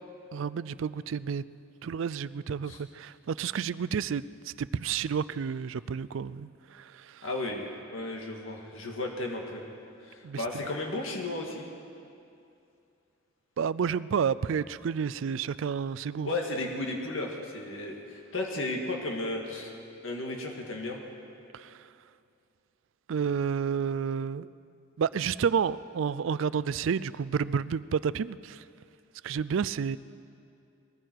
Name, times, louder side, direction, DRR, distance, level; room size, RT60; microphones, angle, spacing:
voice 1, 0.3-1.4 1.8-7.3 10.2-10.4 13.6-16.3 21.5-21.9 23.1-24.5 25.0-28.6 29.2-30.0, right 6 dB, 70° right, 18 dB, 0.4 m, -30 dB
voice 2, 7.2-9.6 10.0-11.6 16.2-19.7 20.0-21.0, left 2 dB, 75° left, 1 dB, 1.9 m, -34 dB
20.5 x 15.0 x 4.6 m, 2.5 s
head